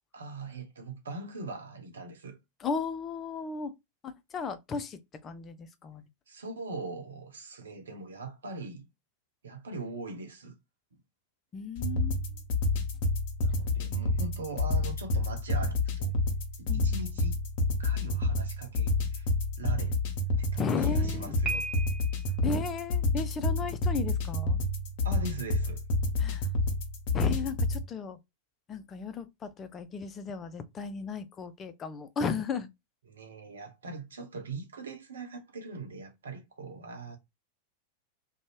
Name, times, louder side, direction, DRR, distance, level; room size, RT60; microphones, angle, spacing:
voice 1, 0.1-2.4 6.3-8.8 9.4-10.5 13.4-16.1 16.6-17.4 17.8-19.3 19.6-20.0 20.4-21.7 22.3-22.4 25.0-25.8 33.0-37.2, right 3 dB, 65° right, 0.8 m, -41 dB
voice 2, 2.6-3.7 4.0-6.0 11.5-12.2 16.7-17.0 20.6-21.4 22.4-24.6 26.2-26.5 27.1-28.2 28.7-32.7, left 5 dB, 25° left, 0.5 m, -35 dB
sound 1, 11.8-27.8, left 2 dB, 45° left, 1.0 m, -29 dB
Piano, 21.4-22.4, right 3 dB, 5° right, 1.1 m, -35 dB
2.6 x 2.2 x 3.0 m
figure-of-eight pair, 90°, 0 cm